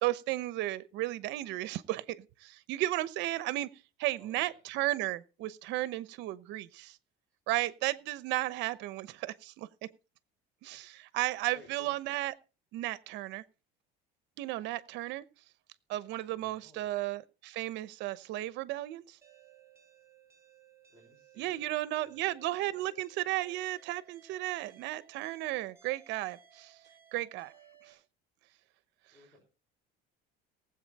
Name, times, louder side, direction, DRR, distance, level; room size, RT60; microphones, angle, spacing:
voice 1, 0.0-3.7 4.0-7.0 7.5-9.7 10.6-12.3 12.7-13.4 14.4-15.2 15.9-19.2 21.4-26.7 27.1-27.5, right 17 dB, 65° right, 0.9 m, -34 dB
voice 2, 4.2-4.7 11.5-12.0 16.4-16.9 20.9-22.7 24.7-24.8 29.1-29.4, equal, 5° left, 5.6 m, -59 dB
sound 1, 19.2-27.9, right 8 dB, 15° right, 7.2 m, -61 dB
19.0 x 8.1 x 4.2 m
cardioid pair, 150°, 20 cm